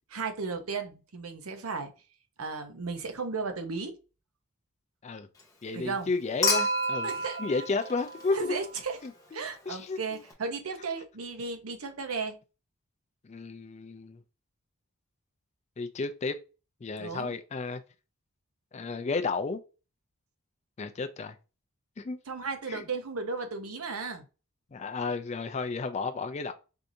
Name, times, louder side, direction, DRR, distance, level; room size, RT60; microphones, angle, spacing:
voice 1, 0.1-1.9 2.4-4.0 5.7-6.1 7.0-7.4 8.3-9.0 9.3-12.4 17.0-17.4 22.3-24.2, right 4 dB, 85° right, 0.7 m, -35 dB
voice 2, 5.6-7.1 7.4-8.5 9.0-10.2 13.2-14.2 15.8-16.4 16.8-17.8 18.7-19.6 20.8-21.3 22.0-22.2 22.7-22.8 24.7-26.5, left 4 dB, 30° left, 0.3 m, -32 dB
Human group actions / Chink clink / Liquid, 6.4-8.8 10.3-10.4, left 1 dB, 15° left, 0.8 m, -30 dB
4.6 x 2.6 x 2.6 m
head